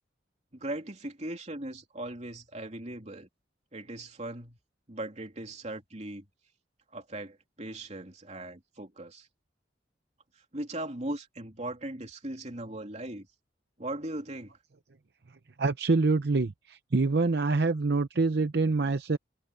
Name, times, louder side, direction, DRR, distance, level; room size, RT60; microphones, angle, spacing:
voice 1, 0.5-3.3 3.7-4.6 4.9-6.2 6.9-9.3 10.5-13.3 13.8-14.5, right 1 dB, 40° right, 3.1 m, -38 dB
voice 2, 15.6-19.2, right 3 dB, 65° right, 0.7 m, -26 dB
head